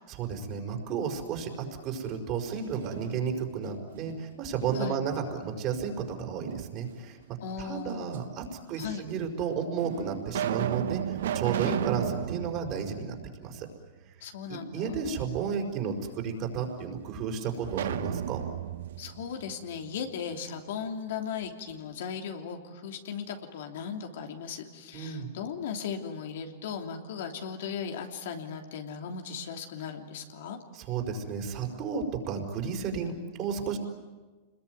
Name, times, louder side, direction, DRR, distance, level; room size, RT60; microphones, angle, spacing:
voice 1, 0.1-7.2 7.6-13.7 14.5-18.4 24.9-25.3 30.7-33.8, right 6 dB, 40° right, 3 dB, 5.4 m, -33 dB
sound 1, 2.5-3.5 3.9-5.2 6.5-7.3 8.1-8.2 9.1-9.2 9.8-13.9 14.2-14.3 17.6-20.4, right 10 dB, 80° right, 1.2 m, -35 dB
voice 2, 7.4-8.1 8.8-9.0 11.6-11.9 14.2-15.2 19.0-30.6, left 6 dB, 75° left, 4 dB, 3.1 m, -37 dB
26.5 x 21.5 x 9.6 m, 1.3 s
hypercardioid pair, 125°, 0 cm